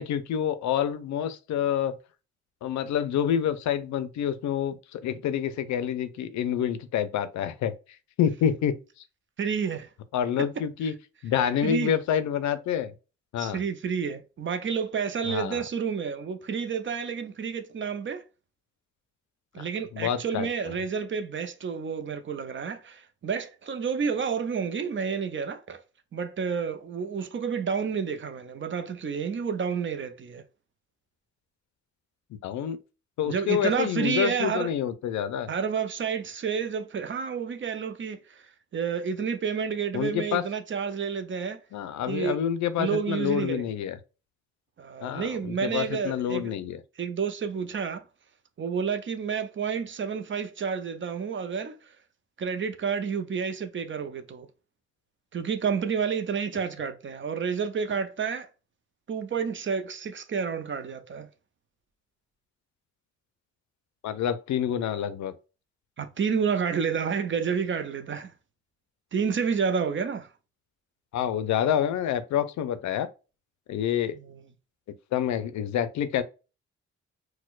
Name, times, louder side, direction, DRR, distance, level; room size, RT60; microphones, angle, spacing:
voice 1, 0.0-1.9 2.6-7.7 8.2-8.7 10.1-10.9 11.2-12.9 13.3-13.6 15.3-15.6 19.6-19.7 19.9-20.7 32.3-32.8 33.2-35.5 39.9-40.4 41.7-44.0 45.0-46.8 64.0-65.3 71.1-73.1 73.7-74.2 75.1-76.2, left 9 dB, 70° left, 0.5 m, -27 dB
voice 2, 9.4-9.9 11.6-11.9 13.4-18.2 19.5-25.8 26.1-30.4 33.2-34.7 35.5-38.4 38.7-41.6 42.1-42.4 42.8-43.6 44.8-46.5 47.0-48.0 48.6-51.8 52.4-54.5 55.3-58.5 59.1-61.3 66.0-68.3 69.1-70.3 74.1-74.4, right 6 dB, 40° right, 0.6 m, -30 dB
4.3 x 2.2 x 2.4 m
supercardioid pair, 55°, 30 cm